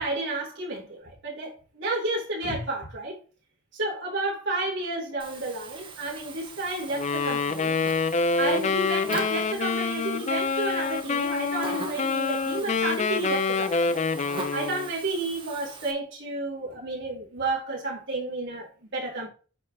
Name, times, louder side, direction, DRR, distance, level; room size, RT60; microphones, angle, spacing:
voice 1, 0.0-3.2 3.7-7.8 8.4-14.0 14.5-19.3, right 2 dB, 60° right, 3.8 m, -31 dB
Buzz, 5.2-15.9, right 3 dB, 25° right, 1.2 m, -41 dB
Wind instrument woodwind instrument, 6.9-14.9, left 4 dB, 35° left, 0.5 m, -26 dB
10.5 x 4.6 x 3.0 m
head